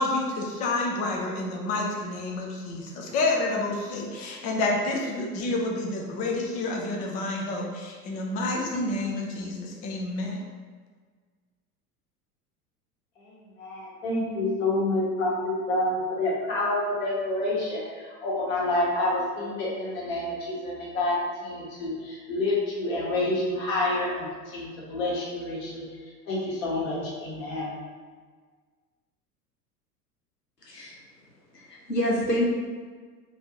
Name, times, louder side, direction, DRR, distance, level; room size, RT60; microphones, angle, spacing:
voice 1, 0.0-10.4, left 2 dB, 20° left, 0 dB, 0.4 m, -29 dB
voice 2, 13.2-27.7, left 2 dB, 55° left, -5 dB, 1.5 m, -28 dB
voice 3, 30.6-31.0 31.5-32.5, equal, 90° left, -4 dB, 0.9 m, -27 dB
4.5 x 2.6 x 2.7 m, 1.6 s
figure-of-eight pair, 80°, 47 cm